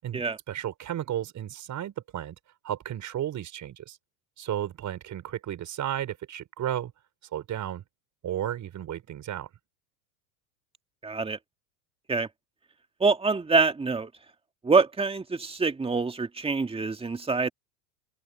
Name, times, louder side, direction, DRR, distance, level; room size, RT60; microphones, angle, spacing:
voice 1, 0.0-2.4 2.6-4.0 4.4-6.9 7.3-7.8 8.2-9.5, right 11 dB, 35° right, 5.7 m, -33 dB
voice 2, 11.0-11.4 12.1-12.3 13.0-14.1 14.6-17.5, right 4 dB, 10° right, 2.1 m, -25 dB
open air
hypercardioid pair, 105°, 48 cm